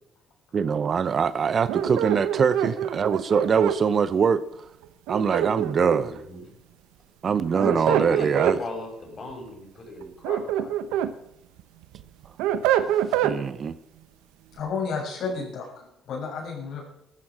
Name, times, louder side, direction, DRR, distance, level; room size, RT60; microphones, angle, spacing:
voice 1, 0.5-4.4 5.1-6.2 7.2-8.6 13.2-13.8, right 6 dB, 45° right, 0.8 m, -23 dB
sound 1, 1.7-3.8 5.1-6.2 7.3-8.6 10.0-11.1 11.6-13.4, right 11 dB, 90° right, 0.9 m, -25 dB
voice 2, 1.8-2.2 6.0-6.4 7.5-10.7, left 1 dB, 40° left, 6.3 m, -36 dB
voice 3, 14.5-16.9, left 5 dB, 65° left, 6.2 m, -32 dB
14.5 x 13.5 x 6.2 m
cardioid pair, 85°, 0 cm